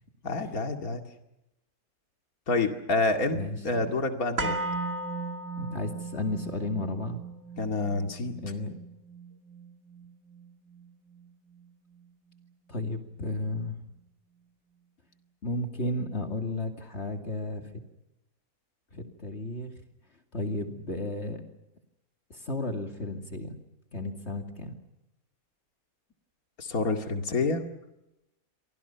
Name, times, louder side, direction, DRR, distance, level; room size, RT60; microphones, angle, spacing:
voice 1, 0.2-1.0 2.5-3.4 3.6-4.6 7.6-8.4 26.6-27.6, left 3 dB, 75° left, 5 dB, 2.8 m, -28 dB
voice 2, 3.3-3.9 5.6-7.2 8.4-8.8 12.7-13.8 15.4-17.8 18.9-19.7 20.3-21.4 22.3-23.6 23.9-24.7, left 2 dB, 50° left, 4 dB, 2.8 m, -33 dB
sound 1, 4.4-12.5 12.8-12.9, right 3 dB, 65° right, 2.9 m, -37 dB
29.5 x 24.5 x 5.8 m, 0.89 s
omnidirectional pair, 1.5 m